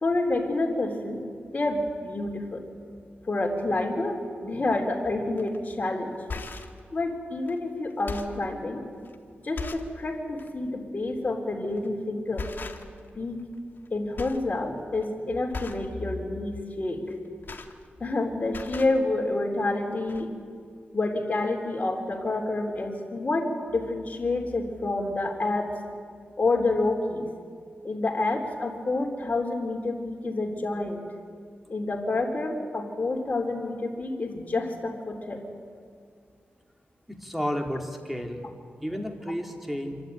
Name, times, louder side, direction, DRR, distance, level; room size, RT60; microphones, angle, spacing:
voice 1, 0.0-1.2 1.5-2.6 3.2-6.2 6.9-8.8 9.4-12.5 13.2-13.4 13.9-17.2 18.0-20.3 20.9-25.8 26.4-27.3 27.8-31.0 31.7-35.4, left 2 dB, 40° left, 1 dB, 3.4 m, -28 dB
sound 1, 5.4-5.6 6.1-6.8 7.5-7.6 7.9-8.5 9.1-9.2 9.6-10.0 10.3-10.5 11.7-11.9 12.4-13.1 13.4-13.9 14.2-14.5 14.8-15.1 15.5-15.9 17.1-18.2 18.4-19.0 19.8-19.9 20.1-20.2, left 4 dB, 55° left, 1.6 m, -38 dB
voice 2, 37.1-38.5 38.8-40.0, equal, 5° right, 3 dB, 2.6 m, -32 dB
26.5 x 12.0 x 9.1 m, 2.2 s
wide cardioid pair, 85°, 4 cm